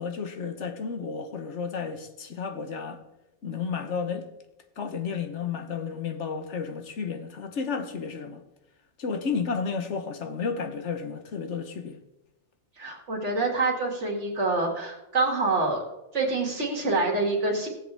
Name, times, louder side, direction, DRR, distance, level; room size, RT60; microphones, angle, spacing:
voice 1, 0.0-3.0 3.4-4.3 4.8-8.4 9.0-12.0, left 5 dB, 80° left, 1.4 m, -32 dB
voice 2, 12.8-15.8 16.1-17.7, right 3 dB, 80° right, 2.6 m, -26 dB
17.5 x 7.7 x 3.5 m
omnidirectional pair, 1.2 m